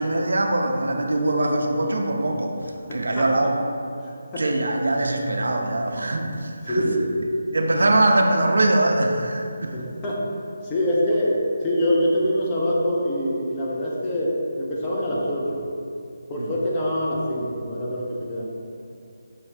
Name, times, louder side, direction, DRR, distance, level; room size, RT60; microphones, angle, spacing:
voice 1, 0.0-2.5 2.9-3.6 4.4-6.9 7.5-9.7 16.4-16.6, right 2 dB, 70° right, 3 dB, 0.4 m, -22 dB
voice 2, 2.9-3.5 4.0-4.4 6.7-7.1 9.7-10.2 10.6-15.6 16.3-18.5, equal, 20° left, -5 dB, 0.7 m, -25 dB
5.8 x 2.3 x 3.3 m, 2.4 s
figure-of-eight pair, 155°, 0 cm